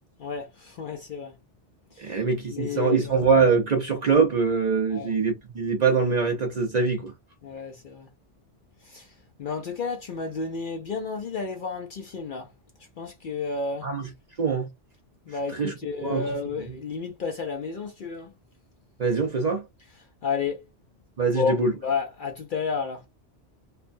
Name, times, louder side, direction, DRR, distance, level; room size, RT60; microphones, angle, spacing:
voice 1, 0.2-1.3 2.0-2.2 2.5-3.3 4.9-5.2 7.4-8.1 8.8-9.1 9.4-12.5 13.0-13.9 15.3-18.3 20.2-20.6 21.3-23.0, left 5 dB, 60° left, 0.6 m, -31 dB
voice 2, 2.0-7.1 13.8-14.0 14.4-14.7 15.5-15.7 16.0-16.2 19.0-19.6 21.2-21.7, right 5 dB, 45° right, 0.6 m, -23 dB
3.2 x 2.1 x 2.5 m
omnidirectional pair, 1.2 m